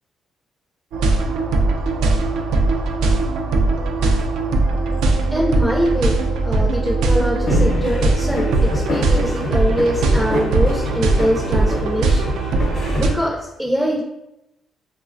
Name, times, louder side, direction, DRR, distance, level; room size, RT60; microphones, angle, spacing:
sound 1, 0.9-13.1, right 2 dB, 90° right, 0.3 m, -19 dB
voice 1, 5.3-6.2 6.4-12.3 13.0-14.0, equal, ahead, -3 dB, 0.4 m, -23 dB
sound 2, 7.5-13.1, left 2 dB, 60° left, 0.7 m, -27 dB
3.0 x 2.1 x 2.4 m, 0.88 s
cardioid pair, 90°, 0 cm